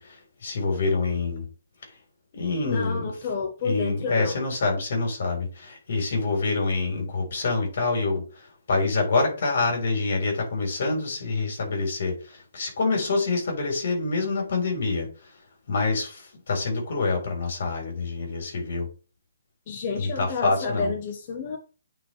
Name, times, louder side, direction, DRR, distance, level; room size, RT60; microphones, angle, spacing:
voice 1, 0.0-1.5 2.3-3.1 3.6-8.2 8.7-15.1 15.7-18.9 20.0-20.9, left 3 dB, 55° left, 4.0 m, -26 dB
voice 2, 2.6-4.4 19.7-21.6, left 4 dB, 30° left, 1.0 m, -30 dB
8.9 x 4.4 x 3.3 m
hypercardioid pair, 165°, 0 cm